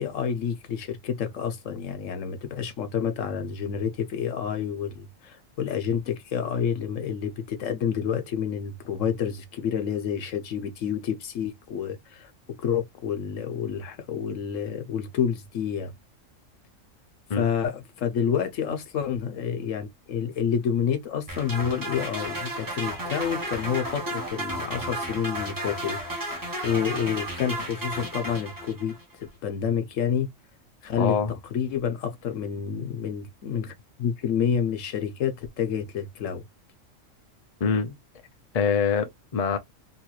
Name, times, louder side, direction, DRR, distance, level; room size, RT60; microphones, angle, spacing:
voice 1, 0.0-12.3 12.6-15.9 17.4-26.4 26.6-30.3 30.8-31.2 31.5-36.4, left 8 dB, 75° left, 1.1 m, -29 dB
sound 1, 21.3-29.0, right 1 dB, 15° right, 1.0 m, -33 dB
voice 2, 31.0-31.3 37.6-38.0 38.5-39.6, left 6 dB, 40° left, 0.5 m, -24 dB
3.1 x 3.0 x 2.3 m
omnidirectional pair, 1.3 m